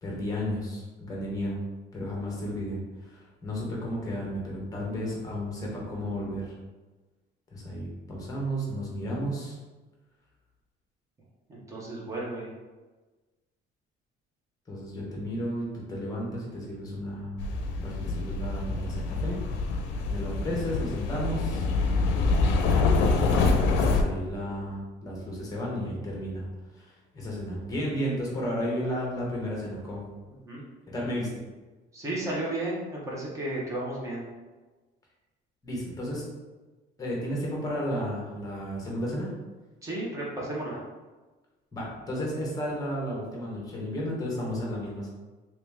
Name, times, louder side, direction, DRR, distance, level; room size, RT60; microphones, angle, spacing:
voice 1, 0.0-1.6 1.9-6.5 7.5-9.6 14.7-17.3 17.8-19.4 20.1-21.6 23.2-26.5 26.7-30.0 30.9-31.3 35.6-36.3 37.0-39.3 41.7-45.1, equal, 20° left, -3 dB, 0.9 m, -33 dB
voice 2, 11.5-12.5 19.9-20.3 24.5-24.6 30.3-30.7 31.9-34.3 39.8-40.8, right 1 dB, 15° right, -5 dB, 0.9 m, -34 dB
sound 1, 17.4-24.0, left 3 dB, 90° left, 0.5 m, -25 dB
3.0 x 2.9 x 3.5 m, 1.2 s
cardioid pair, 170°, 19 cm